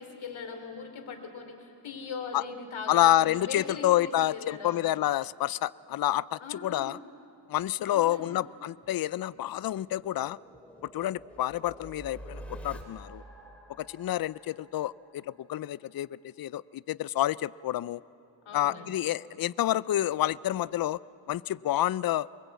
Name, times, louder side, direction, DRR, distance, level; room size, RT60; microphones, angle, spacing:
voice 1, 0.0-3.9 4.3-4.8 6.4-6.9 7.8-8.3 18.4-18.9, left 5 dB, 80° left, 4 dB, 3.2 m, -40 dB
voice 2, 2.9-7.0 7.5-10.4 10.9-13.2 13.8-18.0 18.5-21.0 21.3-22.3, left 13 dB, 50° left, 19 dB, 0.5 m, -28 dB
sound 1, 8.8-15.6, right 1 dB, 5° left, 3.2 m, -48 dB
24.0 x 22.0 x 8.3 m, 2.8 s
cardioid pair, 90°, 47 cm